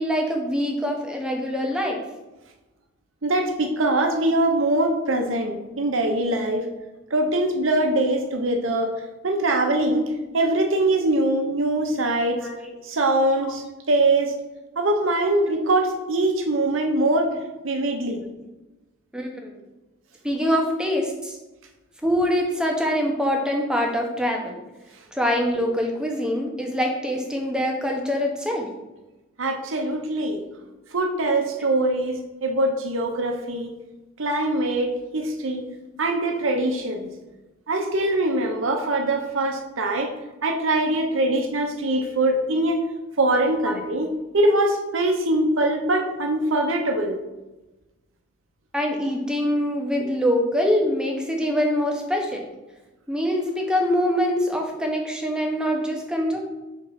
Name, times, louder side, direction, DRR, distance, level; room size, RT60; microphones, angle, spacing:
voice 1, 0.0-2.0 12.4-12.7 13.4-13.5 19.1-19.6 20.2-21.4 22.0-24.6 25.1-28.7 43.6-43.7 48.7-52.5 53.1-56.4, equal, 5° right, 1 dB, 0.8 m, -24 dB
voice 2, 3.2-6.7 7.1-8.9 9.2-12.4 12.8-14.3 14.8-17.4 17.6-18.2 29.4-30.4 30.9-33.7 34.2-35.7 36.0-37.1 37.7-40.1 40.4-42.8 43.2-47.2, right 1 dB, 65° right, 3 dB, 0.9 m, -23 dB
4.5 x 3.9 x 5.7 m, 1.0 s
head